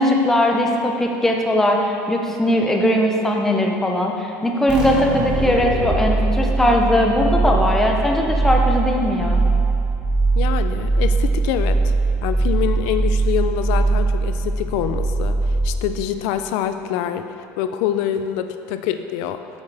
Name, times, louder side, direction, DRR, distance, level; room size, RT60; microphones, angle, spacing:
voice 1, 0.0-9.4, left 1 dB, 5° left, 1 dB, 0.6 m, -19 dB
sound 1, 4.7-16.1, right 3 dB, 15° right, 1.0 m, -21 dB
voice 2, 10.4-11.9 12.2-19.4, left 10 dB, 80° left, 9 dB, 0.4 m, -25 dB
8.6 x 7.2 x 3.3 m, 2.8 s
cardioid pair, 170°, 6 cm